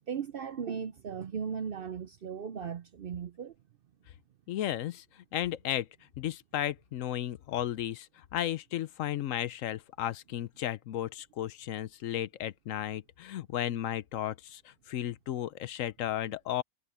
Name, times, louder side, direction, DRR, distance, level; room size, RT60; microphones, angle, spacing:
voice 1, 0.1-3.5, right 7 dB, 55° right, 0.6 m, -37 dB
voice 2, 4.5-5.9 6.2-16.6, left 12 dB, 75° left, 1.0 m, -34 dB
omnidirectional pair, 1.4 m